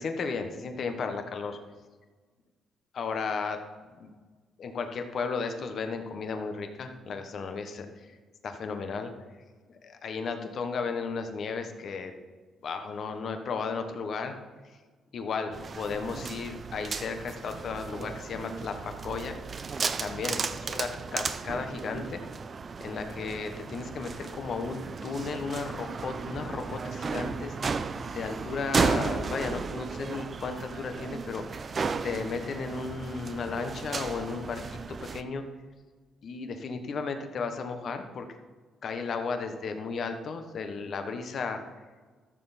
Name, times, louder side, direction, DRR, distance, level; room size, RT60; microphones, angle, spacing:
voice 1, 0.0-1.6 2.9-3.6 4.0-4.1 4.6-8.1 8.4-9.1 9.7-12.1 12.6-14.3 15.1-19.3 20.0-22.2 22.8-27.6 28.1-35.4 36.2-38.3 38.8-41.6, left 4 dB, 55° left, 7 dB, 1.2 m, -34 dB
sound 1, 15.5-35.2, right 5 dB, 40° right, 0.6 m, -34 dB
13.5 x 7.1 x 4.2 m, 1.4 s
cardioid pair, 90°, 0 cm